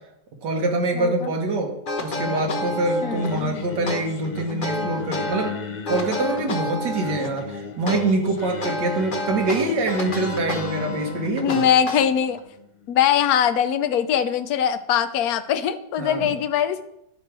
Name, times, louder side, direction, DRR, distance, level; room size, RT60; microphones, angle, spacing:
voice 1, 0.4-1.7 2.0-5.6 5.9-11.6 16.0-16.4, right 2 dB, 70° right, 2 dB, 2.2 m, -25 dB
voice 2, 0.9-1.3 3.0-3.6 11.4-12.4 12.9-16.8, left 9 dB, 65° left, 11 dB, 1.0 m, -22 dB
sound 1, 1.8-3.4 3.9-5.5 5.8-7.4 7.9-12.4, left 2 dB, 30° left, 1.1 m, -30 dB
Singing, 2.2-13.3, left 5 dB, 90° left, 0.4 m, -36 dB
11.5 x 5.0 x 6.0 m, 0.81 s
omnidirectional pair, 1.9 m